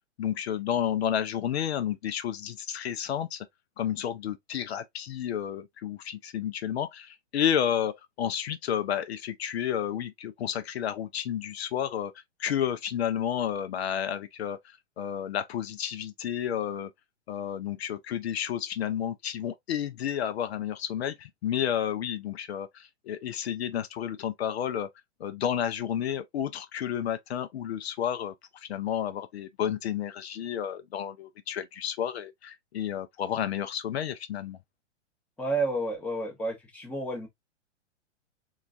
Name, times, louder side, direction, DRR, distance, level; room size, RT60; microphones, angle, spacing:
voice 1, 0.2-3.5 3.8-12.1 12.4-16.9 17.3-24.9 25.2-34.6, left 9 dB, 60° left, 0.5 m, -31 dB
voice 2, 35.4-37.3, right 2 dB, 5° left, 0.7 m, -30 dB
3.8 x 2.3 x 2.4 m
figure-of-eight pair, 115°, 37 cm